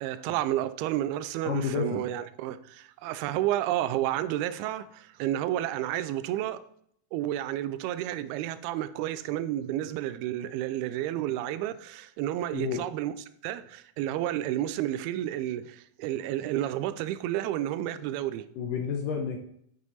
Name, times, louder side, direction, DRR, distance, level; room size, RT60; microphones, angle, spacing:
voice 1, 0.0-6.6 7.1-13.1 13.4-18.5, right 13 dB, 85° right, 2.4 m, -31 dB
voice 2, 1.4-2.0 12.5-12.8 18.6-19.4, left 6 dB, 80° left, 1.9 m, -30 dB
7.4 x 6.1 x 4.0 m
omnidirectional pair, 4.5 m